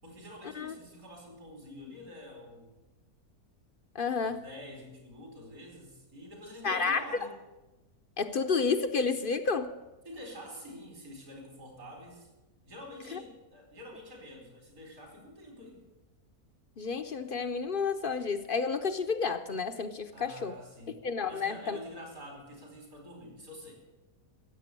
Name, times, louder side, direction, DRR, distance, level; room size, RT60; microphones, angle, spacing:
voice 1, 0.0-2.7 4.2-7.4 10.1-12.3 12.6-15.8 20.1-21.0 21.3-23.7, left 1 dB, 70° right, 1 dB, 5.2 m, -47 dB
voice 2, 3.9-4.4 6.6-7.0 8.2-9.7 13.1-13.2 16.8-20.5 21.0-21.8, left 5 dB, 50° left, 9 dB, 0.7 m, -30 dB
15.5 x 7.8 x 9.7 m, 1.1 s
omnidirectional pair, 1.6 m